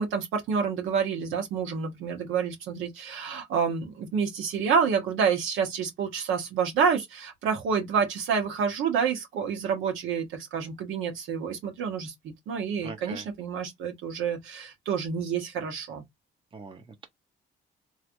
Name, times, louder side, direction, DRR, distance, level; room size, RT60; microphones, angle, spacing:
voice 1, 0.0-16.0, right 6 dB, 85° right, 1.3 m, -28 dB
voice 2, 12.8-13.3 16.5-17.1, right 4 dB, 25° right, 0.8 m, -42 dB
3.1 x 3.1 x 2.6 m
cardioid pair, 90°, 20 cm